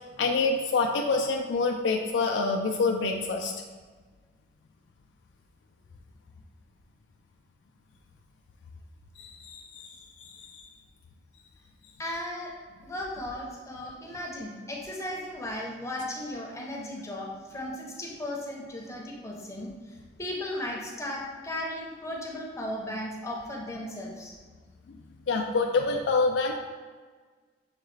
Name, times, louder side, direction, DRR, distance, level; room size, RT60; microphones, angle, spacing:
voice 1, 0.2-3.5 9.2-9.9 10.2-10.6 24.9-25.0 25.3-26.5, left 3 dB, 85° left, 2 dB, 0.4 m, -27 dB
voice 2, 12.0-12.5 12.8-19.7 20.2-24.3, left 1 dB, 15° left, -2 dB, 0.6 m, -36 dB
6.5 x 2.3 x 3.2 m, 1.4 s
head